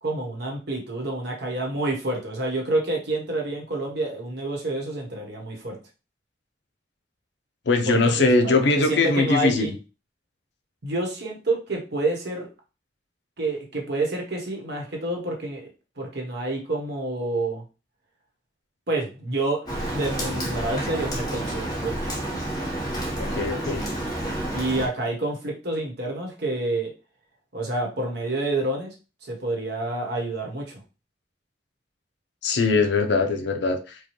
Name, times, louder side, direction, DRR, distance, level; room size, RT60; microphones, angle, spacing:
voice 1, 0.0-5.8 7.9-9.7 10.8-12.5 13.4-15.7 16.0-17.6 18.9-22.0 24.5-26.9 27.5-28.9 29.2-30.8, right 2 dB, 60° right, 1.2 m, -28 dB
voice 2, 7.7-9.7 23.2-23.8 32.4-34.0, left 3 dB, 65° left, 0.6 m, -21 dB
Rain, 19.7-24.9, right 1 dB, 20° left, 1.0 m, -29 dB
4.7 x 2.3 x 3.0 m
head